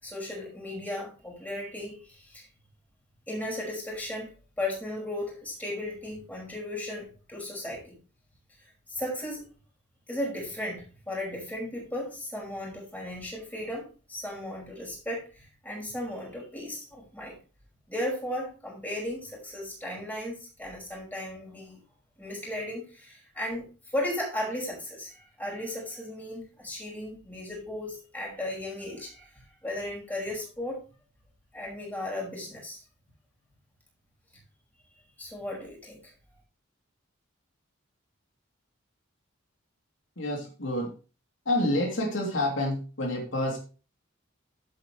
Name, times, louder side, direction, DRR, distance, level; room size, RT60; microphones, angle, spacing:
voice 1, 0.0-2.5 3.3-4.3 4.6-8.0 8.6-9.4 10.1-17.4 17.9-21.8 22.2-30.8 31.5-32.8 35.2-36.1, left 1 dB, 10° left, -3 dB, 5.6 m, -36 dB
voice 2, 40.2-40.9 41.4-43.6, left 1 dB, 70° left, 0 dB, 3.1 m, -28 dB
11.5 x 8.7 x 3.2 m, 0.33 s
head